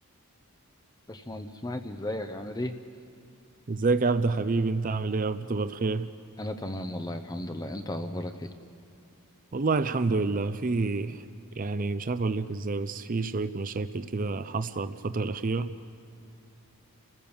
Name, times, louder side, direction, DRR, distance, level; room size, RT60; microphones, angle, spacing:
voice 1, 1.1-2.8 6.4-8.5, left 1 dB, 15° left, 7 dB, 0.6 m, -35 dB
voice 2, 3.7-6.1 9.5-11.2 11.6-15.7, right 3 dB, 35° right, 11 dB, 0.5 m, -28 dB
30.0 x 15.5 x 7.1 m, 2.6 s
head